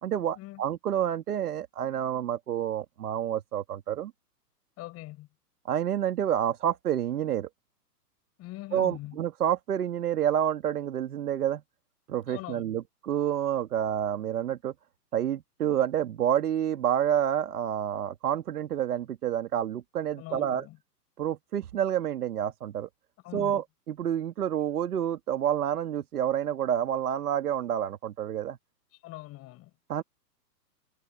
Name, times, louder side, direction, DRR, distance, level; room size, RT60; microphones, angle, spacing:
voice 1, 0.0-4.1 5.7-7.5 8.7-11.6 12.1-14.7 15.1-20.6 21.2-22.9 23.3-28.6 29.9-30.0, right 10 dB, 65° right, 2.5 m, -28 dB
voice 2, 4.8-5.3 8.4-9.2 12.3-12.8 20.2-20.8 23.2-23.6 29.0-29.7, left 17 dB, 30° left, 7.8 m, -42 dB
hypercardioid pair, 130°, 48 cm